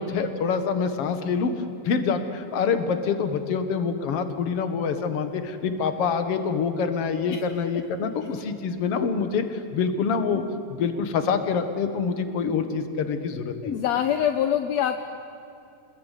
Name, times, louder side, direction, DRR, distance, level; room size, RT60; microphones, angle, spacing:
voice 1, 0.0-1.5 1.8-9.4 9.7-10.4 10.7-13.8, left 5 dB, 50° left, 8 dB, 2.2 m, -26 dB
voice 2, 13.6-15.0, left 10 dB, 70° left, 7 dB, 1.8 m, -24 dB
28.5 x 20.5 x 9.3 m, 2.7 s
omnidirectional pair, 3.9 m